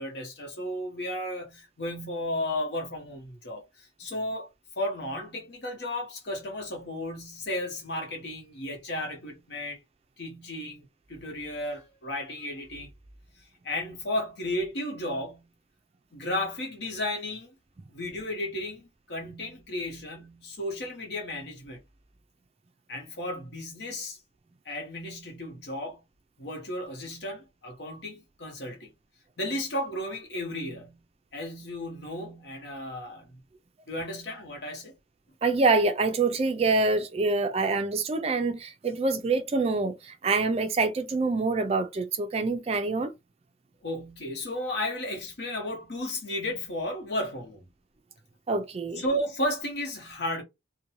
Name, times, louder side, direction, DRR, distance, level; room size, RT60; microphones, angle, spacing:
voice 1, 0.0-4.5 4.8-9.8 10.2-12.9 13.6-15.5 16.1-17.5 17.9-21.8 22.9-24.2 24.6-26.0 26.4-28.9 29.4-31.0 31.3-33.4 33.9-34.9 43.8-47.7 49.0-50.4, left 1 dB, 65° left, 1.0 m, -34 dB
voice 2, 35.4-43.1 48.5-49.0, right 3 dB, 35° right, 0.3 m, -26 dB
2.6 x 2.2 x 3.0 m
head